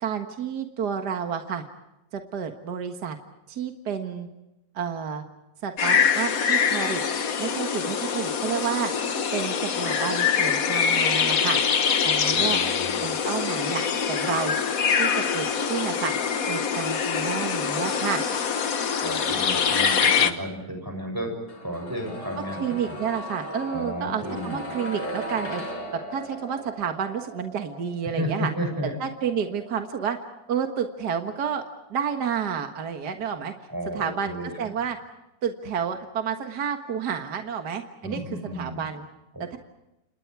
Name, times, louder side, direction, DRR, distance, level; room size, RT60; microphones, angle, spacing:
voice 1, 0.0-1.6 2.1-3.2 3.5-4.3 4.7-5.2 5.6-7.0 7.4-8.9 9.3-11.6 12.0-12.6 13.0-14.6 14.9-16.2 16.5-18.2 22.6-25.6 26.1-28.5 29.0-30.2 30.5-31.6 31.9-33.5 33.9-35.0 35.4-38.2 38.5-39.1 39.4-39.6, right 7 dB, 65° right, 5 dB, 2.1 m, -30 dB
sound 1, 5.8-20.3, left 6 dB, 55° left, 1.6 m, -24 dB
voice 2, 12.4-13.2 19.0-21.3 21.6-22.9 23.7-24.6 28.2-28.9 33.7-34.5 38.0-38.8 39.3-39.6, equal, 10° right, 3 dB, 7.1 m, -33 dB
sound 2, 21.5-33.3 33.6-33.7, equal, 85° left, 6.4 m, -38 dB
30.0 x 28.0 x 4.7 m, 0.89 s
omnidirectional pair, 1.9 m